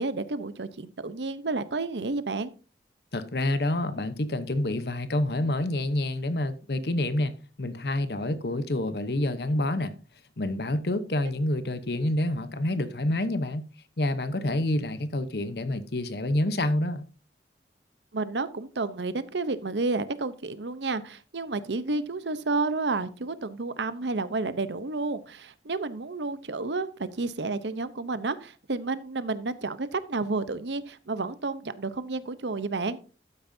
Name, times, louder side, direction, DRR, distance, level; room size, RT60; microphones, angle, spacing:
voice 1, 0.0-2.5 18.1-33.0, right 3 dB, 90° right, 0.8 m, -31 dB
voice 2, 3.1-9.9 10.4-13.7 14.0-17.1, left 1 dB, 65° left, 0.9 m, -28 dB
12.5 x 9.1 x 2.7 m
head